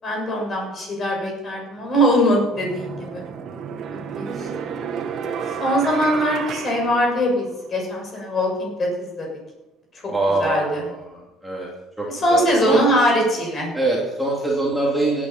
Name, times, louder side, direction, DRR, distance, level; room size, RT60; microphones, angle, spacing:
voice 1, 0.0-3.2 3.9-4.5 5.6-9.3 10.4-10.8 12.1-13.7, equal, 30° left, 0 dB, 7.0 m, -21 dB
sound 1, 1.8-1.9 2.5-7.7, right 7 dB, 50° right, 1.8 m, -31 dB
voice 2, 10.1-11.7 12.0-12.8 13.7-15.3, right 2 dB, 5° right, -5 dB, 2.9 m, -24 dB
17.0 x 10.0 x 5.9 m, 0.98 s
cardioid pair, 145°, 0 cm